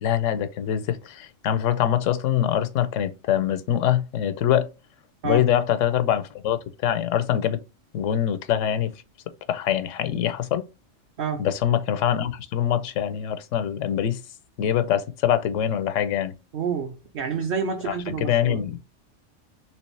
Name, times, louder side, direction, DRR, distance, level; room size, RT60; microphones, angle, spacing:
voice 1, 0.0-4.7 5.2-7.6 7.9-8.9 9.5-10.6 11.4-14.2 14.6-16.3 17.8-18.8, left 10 dB, 85° left, 0.9 m, -24 dB
voice 2, 16.5-18.6, right 5 dB, 55° right, 0.8 m, -28 dB
3.3 x 3.0 x 3.1 m
omnidirectional pair, 1.3 m